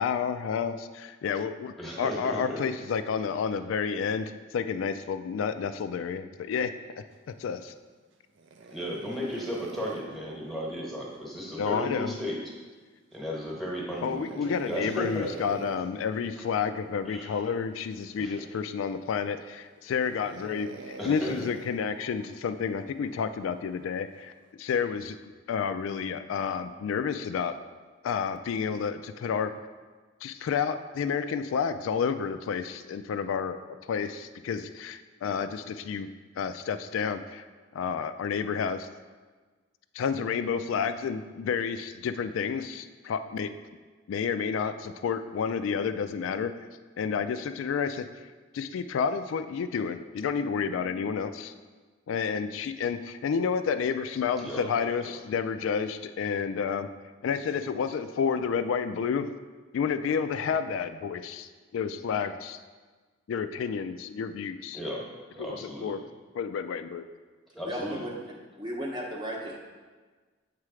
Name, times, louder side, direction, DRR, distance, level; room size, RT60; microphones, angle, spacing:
voice 1, 0.0-6.7 7.4-7.7 11.6-12.1 14.0-24.3 24.6-25.2 25.5-27.6 28.0-29.5 30.2-33.6 33.9-36.1 36.4-37.4 37.7-38.9 39.9-43.5 44.1-46.5 47.0-48.1 48.5-51.5 52.1-56.9 57.2-59.3 59.7-62.6 63.3-64.8 65.4-66.0 66.3-67.0, left 6 dB, 80° left, 10 dB, 0.3 m, -30 dB
voice 2, 1.8-2.6 8.7-12.4 13.1-15.3 17.1-17.4 18.2-18.3 21.0-21.5 54.4-54.7 64.7-65.1 65.3-65.9 67.5-68.1, equal, ahead, -4 dB, 1.0 m, -35 dB
sound 1, 8.3-11.6 13.9-16.0 17.1-17.6 18.1-18.2 18.9-19.4 19.9-23.3 24.2-24.5, right 3 dB, 65° right, 0.4 m, -47 dB
voice 3, 67.6-68.3 68.6-69.6, right 1 dB, 20° right, -1 dB, 0.7 m, -35 dB
7.5 x 3.2 x 4.8 m, 1.4 s
head